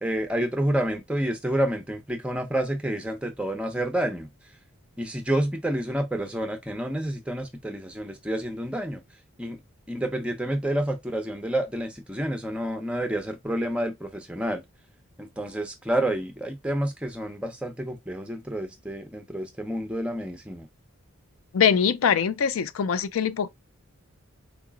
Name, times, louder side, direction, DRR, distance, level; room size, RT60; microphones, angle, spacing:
voice 1, 0.0-4.3 5.0-9.0 9.4-9.6 9.9-14.6 15.2-20.7, right 1 dB, 5° right, 0.6 m, -29 dB
voice 2, 21.5-23.5, left 7 dB, 80° left, 0.4 m, -23 dB
3.9 x 2.9 x 2.4 m
head